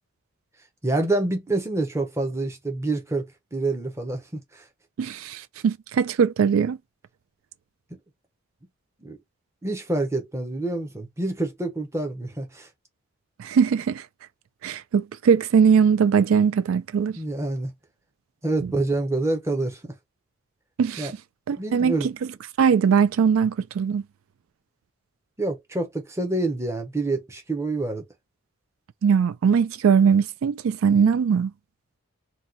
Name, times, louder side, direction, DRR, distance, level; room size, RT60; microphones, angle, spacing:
voice 1, 0.8-4.3 4.5-4.7 7.9-8.0 9.0-9.2 9.6-12.7 17.2-17.7 18.4-19.9 21.0-21.1 21.6-22.1 25.4-28.0, right 2 dB, 15° right, 0.6 m, -27 dB
voice 2, 5.0-6.8 13.4-14.0 14.6-17.2 20.8-21.1 21.5-22.1 22.6-24.0 29.0-31.5, right 6 dB, 85° right, 0.3 m, -20 dB
2.8 x 2.2 x 3.7 m
head